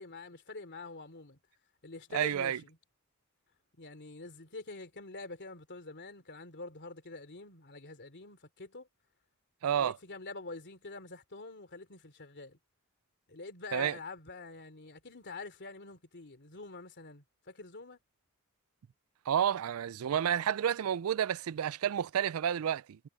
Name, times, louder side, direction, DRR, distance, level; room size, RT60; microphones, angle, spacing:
voice 1, 0.0-1.4 1.8-2.8 3.8-8.9 9.7-12.6 13.3-18.0, left 3 dB, 55° left, 3.1 m, -46 dB
voice 2, 2.1-2.6 9.6-10.0 13.7-13.9 19.3-23.1, right 9 dB, 70° right, 0.4 m, -30 dB
head